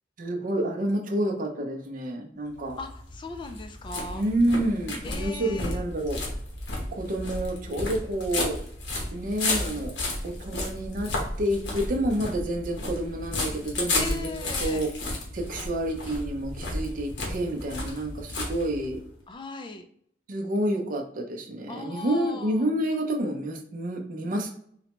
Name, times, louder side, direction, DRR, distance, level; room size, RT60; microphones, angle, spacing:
voice 1, 0.2-2.8 4.1-6.2 6.9-8.6 9.1-9.9 10.2-11.1 11.4-14.9 15.3-19.0 20.3-24.5, right 1 dB, 50° right, 3 dB, 0.5 m, -29 dB
sound 1, 2.6-19.1, left 2 dB, 90° left, 0.9 m, -33 dB
voice 2, 2.8-4.2 5.0-5.8 14.0-14.8 19.3-19.9 21.7-22.7, left 3 dB, 25° left, 7 dB, 0.3 m, -38 dB
3.9 x 2.1 x 2.9 m, 0.64 s
head